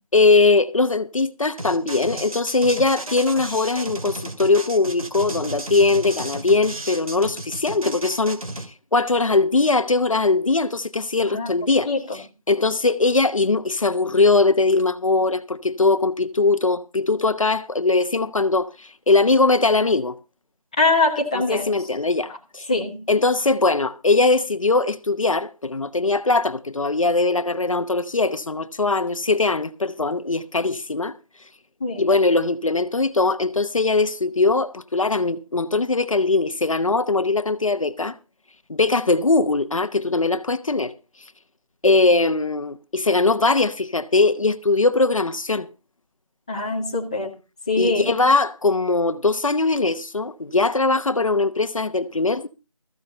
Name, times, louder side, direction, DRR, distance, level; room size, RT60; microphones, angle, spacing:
voice 1, 0.1-8.4 8.9-20.2 21.3-22.7 23.1-31.1 32.0-38.1 38.7-40.9 41.8-45.7 47.8-52.5, left 3 dB, 65° left, 1.0 m, -20 dB
sound 1, 1.6-8.7, right 1 dB, 75° right, 2.3 m, -33 dB
voice 2, 20.8-21.7 22.7-23.0 31.8-32.1 46.5-47.3 47.7-48.1, left 3 dB, 10° left, 1.0 m, -22 dB
14.5 x 6.5 x 6.6 m
figure-of-eight pair, 175°, 18 cm